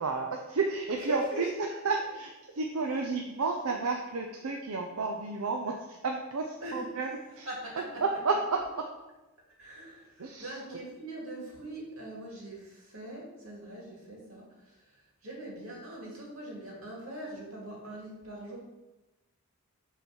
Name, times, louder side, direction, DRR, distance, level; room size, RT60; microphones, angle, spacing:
voice 1, 0.0-2.3 2.6-7.1 7.4-7.5 8.0-8.8 10.2-10.8, right 4 dB, 90° right, 3 dB, 0.7 m, -31 dB
voice 2, 1.0-1.4 2.9-3.0 6.6-6.9 7.5-8.0 9.6-18.6, right 1 dB, 70° right, -3 dB, 2.7 m, -41 dB
6.9 x 4.0 x 6.1 m, 1.0 s
head